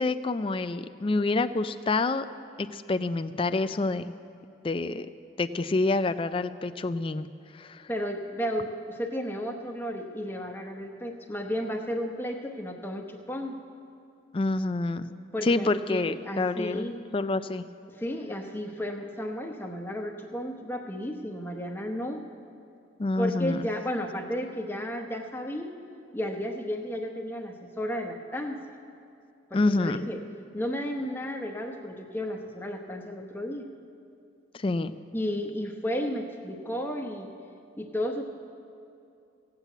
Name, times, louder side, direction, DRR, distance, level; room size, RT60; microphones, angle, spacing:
voice 1, 0.0-2.3 2.6-4.1 4.6-5.1 5.4-7.3 7.5-7.9 14.3-15.1 15.4-17.6 23.0-23.7 29.5-30.1 34.5-34.9, left 3 dB, 25° left, 11 dB, 0.4 m, -27 dB
voice 2, 7.9-13.6 15.3-17.0 17.9-22.2 23.2-25.7 26.1-28.6 29.5-30.2 30.5-33.7 35.1-37.3 37.8-38.2, equal, 10° left, 3 dB, 0.9 m, -33 dB
16.0 x 8.3 x 8.0 m, 2.6 s
head